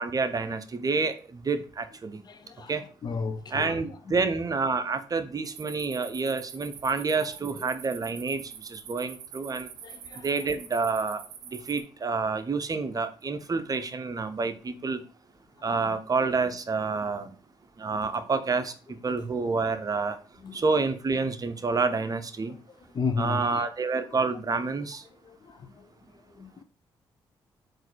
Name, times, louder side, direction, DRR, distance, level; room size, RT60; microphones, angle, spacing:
voice 1, 0.0-2.2 2.7-2.8 3.5-9.7 10.2-11.2 11.5-15.0 15.6-17.3 17.8-18.7 19.0-20.2 20.5-22.5 23.2-25.0, right 4 dB, 35° right, 0.7 m, -28 dB
voice 2, 2.2-4.3 7.4-7.7 9.8-10.3 15.6-16.0 18.0-18.2 20.4-20.6 22.5-23.7 25.2-26.6, left 4 dB, 40° left, 0.6 m, -36 dB
sound 1, 5.4-11.8, right 8 dB, 85° right, 0.6 m, -45 dB
3.8 x 2.6 x 4.5 m
supercardioid pair, 50°, 10 cm